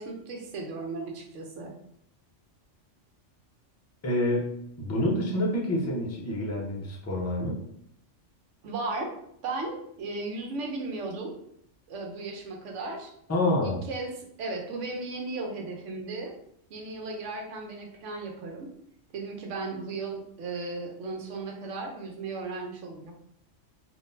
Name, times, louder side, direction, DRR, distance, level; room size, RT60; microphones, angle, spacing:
voice 1, 0.0-1.8 8.6-9.1 9.4-11.3 11.9-13.1 13.6-16.3 16.7-18.7 19.1-23.1, right 3 dB, 75° right, 1 dB, 1.0 m, -36 dB
voice 2, 4.0-4.5 4.8-7.6 13.3-13.8, left 1 dB, 20° left, -3 dB, 0.4 m, -27 dB
3.7 x 2.6 x 2.6 m, 0.72 s
omnidirectional pair, 1.3 m